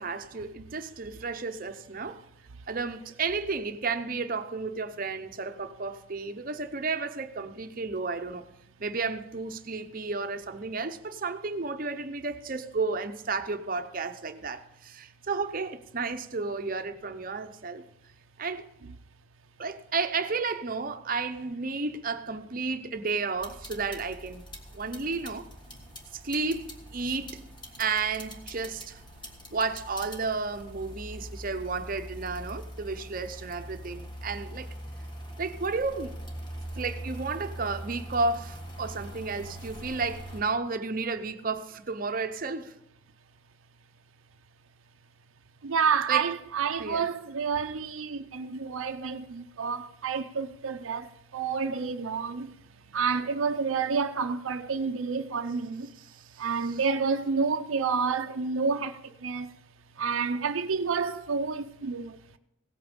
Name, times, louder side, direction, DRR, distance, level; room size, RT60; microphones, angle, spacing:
voice 1, 0.0-2.2 2.7-8.4 8.8-17.8 18.4-18.6 19.6-24.4 24.7-25.5 26.2-27.4 27.8-29.0 29.5-34.7 35.4-36.2 36.7-42.8 46.1-46.3 46.8-47.1 56.0-56.2 56.7-56.8, right 4 dB, 45° right, 0.7 m, -32 dB
sound 1, 23.4-40.4, right 1 dB, 20° left, 1.5 m, -42 dB
voice 2, 45.6-51.1 51.3-52.5 52.9-55.9 56.4-58.9 59.2-59.5 60.0-62.1, right 5 dB, 85° right, 0.5 m, -29 dB
17.0 x 8.5 x 5.2 m
head